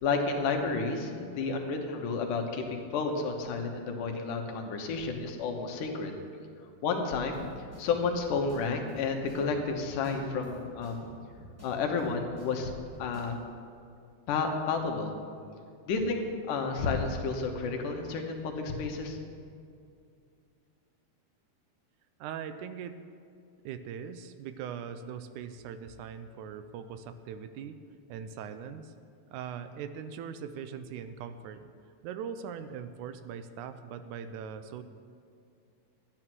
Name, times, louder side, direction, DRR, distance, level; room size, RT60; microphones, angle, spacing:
voice 1, 0.0-6.1 6.8-7.5 7.8-11.1 11.6-12.7 13.0-13.4 14.3-15.1 15.9-19.2, left 4 dB, 85° left, 4 dB, 2.7 m, -31 dB
sound 1, 7.3-13.3, equal, 5° right, 2.3 m, -50 dB
voice 2, 22.2-23.0 23.6-27.8 28.1-28.9 29.3-31.7 32.0-34.8, right 7 dB, 80° right, 11 dB, 2.0 m, -41 dB
12.5 x 9.9 x 6.1 m, 2.3 s
omnidirectional pair, 3.6 m